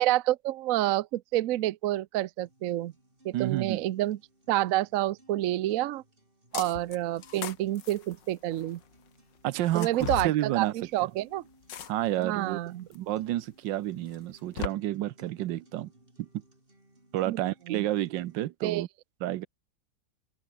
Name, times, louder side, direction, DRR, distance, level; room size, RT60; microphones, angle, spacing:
voice 1, 0.0-2.9 3.2-4.2 4.5-6.0 6.5-8.8 9.7-11.4 12.2-12.9 17.3-17.4 17.7-17.8 18.6-18.8, right 15 dB, 65° right, 0.8 m, -28 dB
sound 1, 2.4-18.4, right 1 dB, 30° right, 6.6 m, -62 dB
voice 2, 3.3-3.8 9.4-10.7 11.0-11.1 11.9-12.6 12.9-15.9 16.2-16.3 17.1-18.9 19.2-19.5, right 14 dB, 80° right, 1.4 m, -30 dB
sound 2, 6.5-7.0 7.2-8.8 9.6-10.3 11.7-12.2 12.9-13.0 14.1-14.7, left 8 dB, 75° left, 2.1 m, -37 dB
omnidirectional pair, 2.0 m